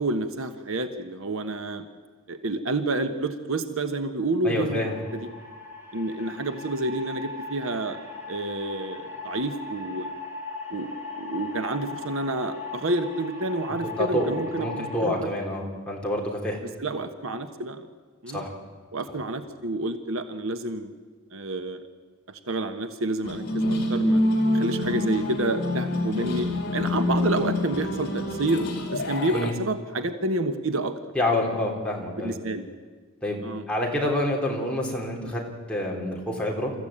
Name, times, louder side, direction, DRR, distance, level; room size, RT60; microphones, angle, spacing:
voice 1, 0.0-1.8 2.3-5.3 5.9-8.0 8.3-10.1 10.7-15.3 16.6-17.8 18.2-18.5 18.9-20.9 21.3-21.8 22.3-24.2 24.5-28.6 28.9-30.9 32.2-32.7 33.4-33.6, right 2 dB, 65° right, 8 dB, 1.3 m, -29 dB
voice 2, 4.4-5.0 14.0-16.6 18.3-18.5 29.3-29.5 31.2-32.4 33.2-33.4 33.7-35.4 35.7-36.7, left 1 dB, 5° left, -2 dB, 3.6 m, -27 dB
sound 1, 4.8-15.0, left 3 dB, 10° right, 3.5 m, -38 dB
sound 2, 23.2-29.5, left 1 dB, 50° left, 3.4 m, -26 dB
27.0 x 14.5 x 8.8 m, 1.5 s
head